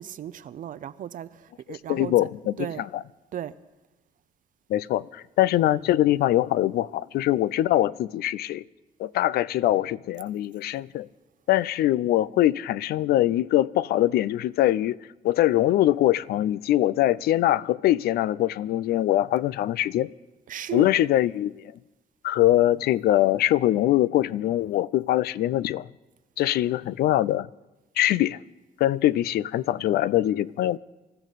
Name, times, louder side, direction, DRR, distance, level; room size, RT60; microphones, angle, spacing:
voice 1, 0.0-2.1 2.6-2.8 3.3-3.5 20.5-20.9, right 10 dB, 60° right, 0.6 m, -35 dB
voice 2, 1.7-3.0 4.7-8.6 9.0-11.1 11.5-15.0 15.2-20.1 20.7-21.7 22.2-25.9 26.4-27.5 28.0-28.4 28.8-30.8, left 14 dB, 85° left, 0.4 m, -23 dB
26.0 x 13.5 x 4.1 m
cardioid pair, 110°, 16 cm